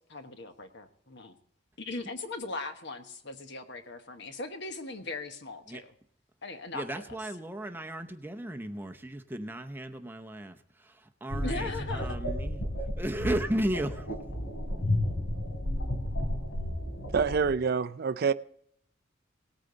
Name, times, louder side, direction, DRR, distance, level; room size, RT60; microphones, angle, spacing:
voice 1, 0.1-1.3 1.8-5.9 6.4-7.2 11.4-12.2, left 3 dB, 55° left, 1.2 m, -39 dB
voice 2, 6.7-12.6 13.0-14.1, right 1 dB, 10° right, 0.7 m, -35 dB
sound 1, 11.3-17.5, left 1 dB, 80° left, 3.6 m, -32 dB
voice 3, 17.1-18.3, right 5 dB, 50° right, 0.4 m, -26 dB
18.0 x 8.8 x 3.9 m
head